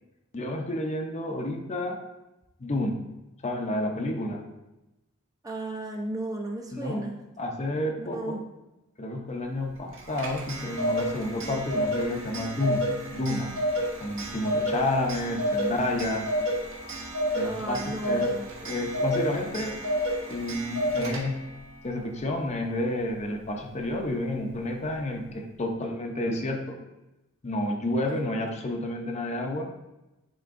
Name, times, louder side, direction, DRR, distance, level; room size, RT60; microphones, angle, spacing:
voice 1, 0.3-2.0 2.6-3.0 3.4-4.4 6.7-7.0 7.4-8.4 9.0-13.5 14.0-16.3 17.3-18.3 18.6-19.8 20.3-21.4 21.8-26.8 27.4-29.7, left 1 dB, 30° left, 2 dB, 0.7 m, -30 dB
voice 2, 5.4-7.2 8.0-8.4 17.4-18.5 28.1-28.2, right 2 dB, 15° right, 1 dB, 0.6 m, -34 dB
Clock, 9.9-21.5, equal, 65° right, 1.4 m, -30 dB
10.0 x 3.6 x 2.6 m, 1.0 s
head